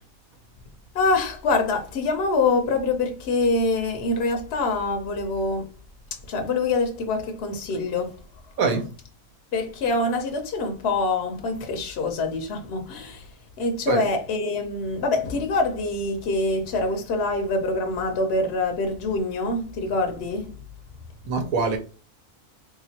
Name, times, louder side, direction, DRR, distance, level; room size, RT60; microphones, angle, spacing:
voice 1, 0.9-5.7 6.3-8.2 9.5-13.3 13.6-20.5, left 3 dB, 60° left, 0.8 m, -25 dB
voice 2, 21.3-21.8, right 4 dB, 80° right, 1.2 m, -23 dB
3.3 x 2.9 x 2.7 m
omnidirectional pair, 1.4 m